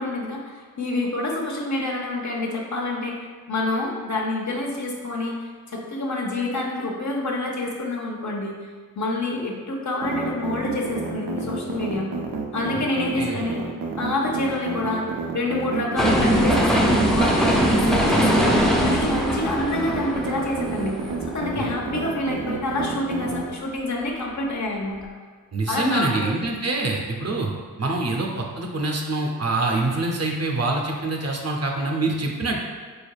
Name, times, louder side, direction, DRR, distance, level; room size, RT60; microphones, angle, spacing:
voice 1, 0.0-3.2 3.5-5.4 5.7-8.7 9.0-12.1 12.5-13.6 14.0-25.0 25.7-26.3, left 2 dB, 50° left, -1 dB, 0.8 m, -27 dB
sound 1, 10.0-23.4, right 3 dB, 90° right, 0.5 m, -29 dB
sound 2, 16.0-22.0 22.4-22.5, equal, ahead, 0.5 m, -21 dB
voice 2, 25.5-27.5 27.8-32.6, right 2 dB, 45° right, 0 dB, 0.6 m, -25 dB
3.8 x 3.4 x 2.3 m, 1.5 s
cardioid pair, 40°, 37 cm